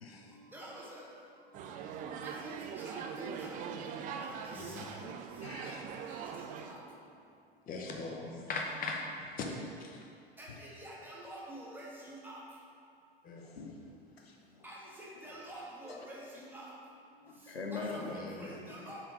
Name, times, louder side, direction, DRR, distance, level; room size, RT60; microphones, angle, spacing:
voice 1, 0.0-0.4 5.4-5.8 10.5-10.6 13.4-13.8 14.2-14.6 15.9-16.0 17.3-18.1, left 4 dB, 80° left, 2 dB, 0.7 m, -43 dB
voice 2, 0.5-1.0 1.6-1.7 2.0-3.6 4.2-5.1 5.4-6.8 10.4-12.4 14.6-16.7 17.7-19.0, right 1 dB, 5° right, -5 dB, 1.4 m, -48 dB
sound 1, 1.5-6.7, right 7 dB, 25° right, 0.4 m, -42 dB
voice 3, 7.7-9.5 9.8-10.0 13.2-13.4 17.9-18.5, left 3 dB, 30° left, 0 dB, 0.9 m, -40 dB
7.1 x 3.8 x 4.9 m, 2.4 s
figure-of-eight pair, 80°, 30 cm